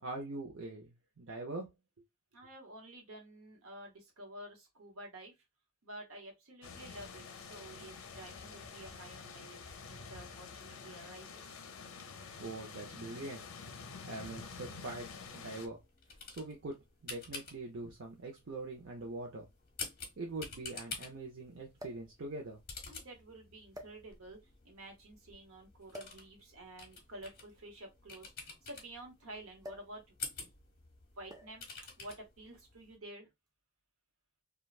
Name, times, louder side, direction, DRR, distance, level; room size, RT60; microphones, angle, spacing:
voice 1, 0.0-1.7 12.4-13.4 14.1-15.8 16.3-19.5 20.2-22.6, right 2 dB, 55° right, 0.6 m, -43 dB
voice 2, 2.3-5.3 5.8-11.6 22.9-24.4 24.6-30.3 31.2-31.7 32.0-33.3, right 1 dB, 75° right, 1.0 m, -51 dB
sound 1, 6.6-15.7, left 5 dB, 65° left, 0.6 m, -48 dB
sound 2, 15.7-33.0, left 4 dB, 40° left, 0.9 m, -50 dB
sound 3, 18.0-18.1 19.2-19.3 19.6-19.7 21.8-22.2 23.0-23.2 23.7-24.4 25.9-26.3 27.4-29.0 29.6-30.0 30.3-30.5 31.3-31.7 32.6-32.9, equal, 15° right, 0.5 m, -51 dB
3.2 x 2.3 x 2.3 m
head